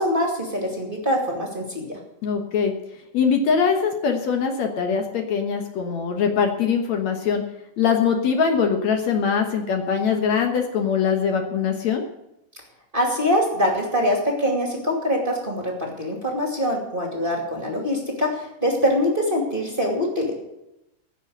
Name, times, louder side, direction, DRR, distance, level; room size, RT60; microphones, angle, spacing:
voice 1, 0.0-2.0 12.9-20.3, equal, 20° right, 0 dB, 2.2 m, -24 dB
voice 2, 2.2-2.7 3.1-7.4 7.8-12.0, left 6 dB, 65° left, 4 dB, 2.3 m, -22 dB
15.5 x 6.8 x 8.0 m, 0.88 s
omnidirectional pair, 3.6 m